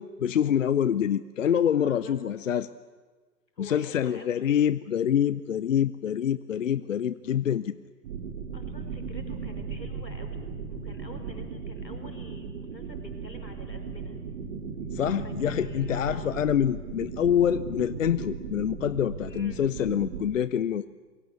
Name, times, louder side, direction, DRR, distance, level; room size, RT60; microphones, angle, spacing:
voice 1, 0.0-2.7 3.6-7.8 14.9-20.9, left 9 dB, 50° left, 16 dB, 0.7 m, -26 dB
voice 2, 1.8-2.2 3.5-4.5 8.5-14.2 15.2-16.4 19.3-19.6, left 1 dB, 85° left, 6 dB, 5.0 m, -47 dB
sound 1, 8.0-20.3, right 5 dB, 45° right, 3.1 m, -37 dB
26.5 x 22.5 x 8.2 m, 1.4 s
figure-of-eight pair, 130°, 49 cm